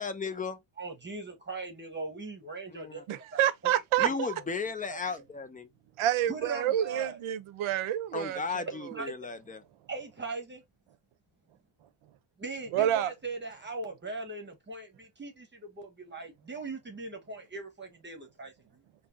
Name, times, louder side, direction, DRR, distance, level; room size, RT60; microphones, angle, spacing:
voice 1, 0.0-0.6 2.7-3.0 4.0-5.7 8.1-9.6, left 4 dB, 20° left, 0.4 m, -35 dB
voice 2, 0.8-3.0 3.3-4.5 4.9-5.0 6.3-7.2 8.9-9.1 9.9-10.6 12.4-18.8, right 3 dB, 20° right, 0.9 m, -40 dB
voice 3, 3.1-4.3 6.0-8.4 12.7-13.1, right 12 dB, 80° right, 0.8 m, -28 dB
4.0 x 2.0 x 4.0 m
cardioid pair, 150°, 48 cm